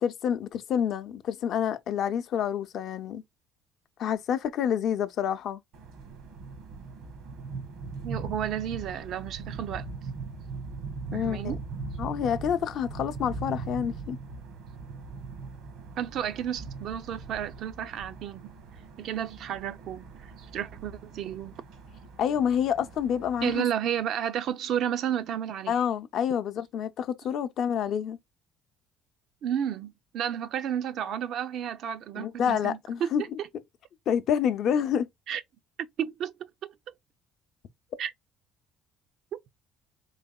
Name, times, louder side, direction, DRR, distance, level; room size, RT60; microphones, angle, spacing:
voice 1, 0.0-3.2 4.0-5.6 11.1-11.6 12.0-14.2 22.2-23.6 25.7-28.2 32.1-33.4 34.1-35.1, left 8 dB, 55° left, 0.6 m, -28 dB
sound 1, 5.7-23.5, right 4 dB, 75° right, 1.4 m, -40 dB
voice 2, 8.0-9.9 11.1-11.6 16.0-18.5 19.0-21.5 23.4-25.8 29.4-33.1 33.4-33.5 35.3-35.4 36.0-36.3 36.6-36.9 38.0-38.1 39.3-39.4, right 9 dB, 55° right, 0.5 m, -32 dB
3.9 x 3.5 x 2.3 m
cardioid pair, 135°, 0 cm